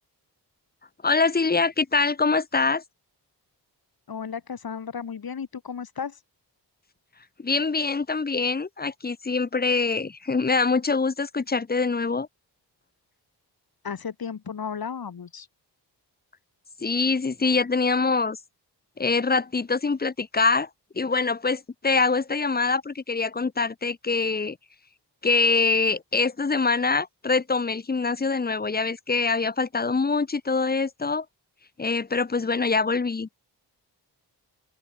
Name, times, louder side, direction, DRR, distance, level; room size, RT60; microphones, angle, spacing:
voice 1, 1.0-2.8 7.4-12.3 16.8-18.4 19.0-20.7 21.0-24.6 25.2-31.3 31.8-33.3, left 4 dB, 25° left, 0.7 m, -24 dB
voice 2, 4.1-6.2 13.8-15.5, left 6 dB, 55° left, 2.0 m, -34 dB
open air
cardioid pair, 65°, 42 cm